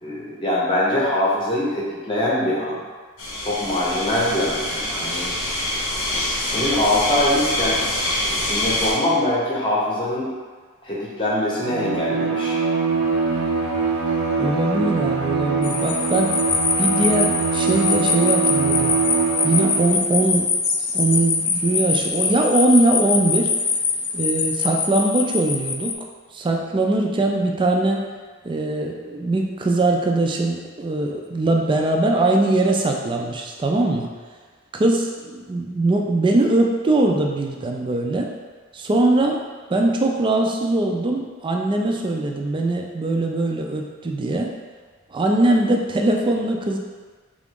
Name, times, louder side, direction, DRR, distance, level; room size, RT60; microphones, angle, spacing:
voice 1, 0.0-2.8 3.4-5.3 6.4-7.8 8.4-10.3 10.8-12.6, left 1 dB, 25° left, -6 dB, 0.8 m, -23 dB
sound 1, 3.2-8.9, left 1 dB, 80° left, 0.9 m, -25 dB
Bowed string instrument, 11.5-20.1, right 5 dB, 90° right, 0.6 m, -23 dB
voice 2, 14.4-16.4 16.8-19.0 19.4-20.5 20.9-23.5 24.1-25.9 26.3-28.0 28.4-34.1 34.7-38.3 38.7-39.4 39.7-44.5 45.1-46.8, right 2 dB, 20° right, 1 dB, 0.3 m, -21 dB
sound 2, 15.6-25.9, left 5 dB, 65° left, 0.5 m, -23 dB
3.8 x 2.5 x 3.5 m, 1.4 s
head